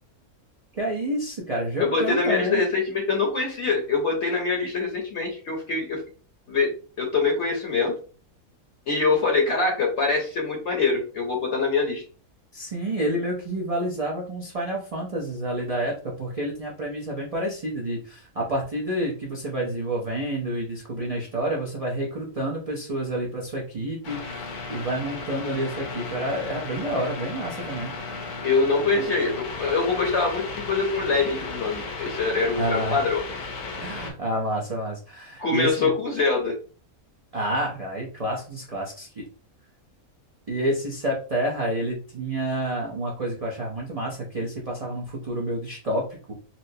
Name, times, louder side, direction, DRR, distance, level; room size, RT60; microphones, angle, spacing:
voice 1, 0.7-2.6 12.5-27.9 32.6-33.0 33.8-35.9 37.3-39.2 40.5-46.3, right 1 dB, 50° right, -3 dB, 0.4 m, -29 dB
voice 2, 1.8-6.0 6.5-7.9 8.9-12.0 28.4-33.2 35.4-36.5, left 4 dB, 60° left, 0 dB, 0.9 m, -24 dB
sound 1, 24.0-34.1, left 3 dB, 85° left, 1.3 m, -35 dB
4.2 x 2.0 x 2.7 m, 0.39 s
omnidirectional pair, 1.6 m